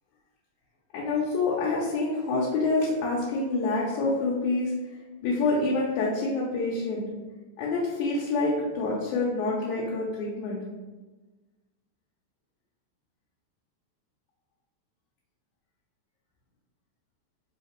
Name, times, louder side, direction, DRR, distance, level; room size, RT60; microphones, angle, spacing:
voice 1, 0.9-4.7 5.2-7.0 7.6-10.6, left 3 dB, 85° left, -5 dB, 2.1 m, -27 dB
4.8 x 2.8 x 3.0 m, 1.2 s
omnidirectional pair, 3.3 m